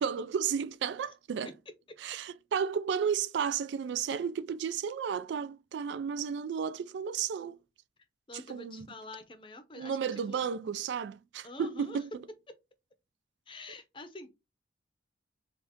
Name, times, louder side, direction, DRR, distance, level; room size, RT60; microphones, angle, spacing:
voice 1, 0.0-1.5 2.0-7.6 8.5-8.9 9.8-12.1, right 7 dB, 75° right, 0.3 m, -33 dB
voice 2, 8.3-10.5 11.4-12.0 13.5-14.3, left 2 dB, 25° left, 0.6 m, -46 dB
3.5 x 2.6 x 3.6 m
head